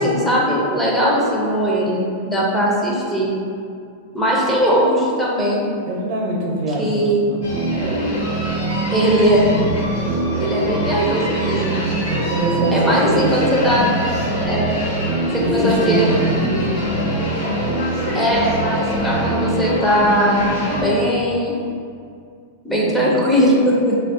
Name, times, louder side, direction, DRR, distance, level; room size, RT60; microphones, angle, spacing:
voice 1, 0.0-3.3 4.1-5.6 6.8-7.2 8.9-9.5 10.4-11.7 12.7-13.9 14.4-14.8 15.4-16.1 18.1-21.5 22.6-24.0, equal, 5° left, -5 dB, 0.5 m, -19 dB
voice 2, 5.9-7.4 10.5-10.8 12.1-14.0 15.2-16.7 22.7-23.2, right 1 dB, 60° right, -1 dB, 0.5 m, -24 dB
sound 1, 7.4-20.8, right 1 dB, 50° left, 0.9 m, -23 dB
2.3 x 2.0 x 3.6 m, 2.3 s
supercardioid pair, 140°, 0 cm